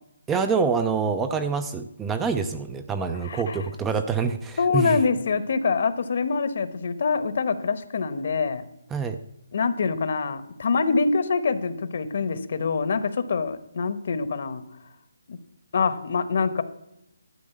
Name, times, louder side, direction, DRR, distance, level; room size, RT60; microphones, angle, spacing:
voice 1, 0.3-5.0 8.9-9.2, right 5 dB, 10° right, 9 dB, 0.4 m, -26 dB
voice 2, 3.2-3.7 4.6-8.6 9.5-14.6 15.3-15.4 15.7-16.6, left 5 dB, 50° left, 12 dB, 1.0 m, -25 dB
12.0 x 5.2 x 8.3 m, 0.81 s
hypercardioid pair, 165°, 0 cm